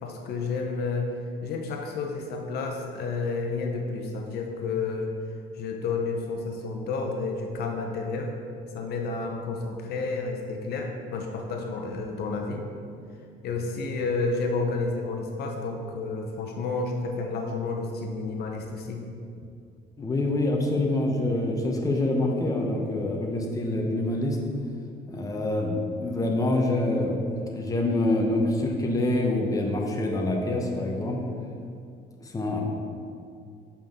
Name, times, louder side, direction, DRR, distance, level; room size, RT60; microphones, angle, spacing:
voice 1, 0.0-1.1 1.4-5.1 5.6-8.3 8.7-12.6 13.4-19.0, left 3 dB, 70° left, 2 dB, 0.8 m, -30 dB
voice 2, 20.0-24.4 25.1-27.2 27.5-31.2 32.2-32.6, left 2 dB, 20° left, 1 dB, 0.9 m, -26 dB
7.4 x 5.6 x 3.6 m, 2.4 s
cardioid pair, 110°, 17 cm